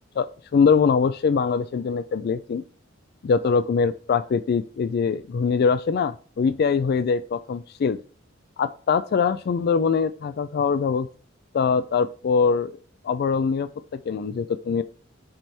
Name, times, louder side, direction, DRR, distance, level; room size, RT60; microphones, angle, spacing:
voice 1, 0.2-2.6 3.2-8.0 8.6-11.1 11.5-12.8 13.0-14.8, left 5 dB, 50° left, 14 dB, 0.3 m, -23 dB
7.5 x 3.4 x 4.3 m, 0.40 s
head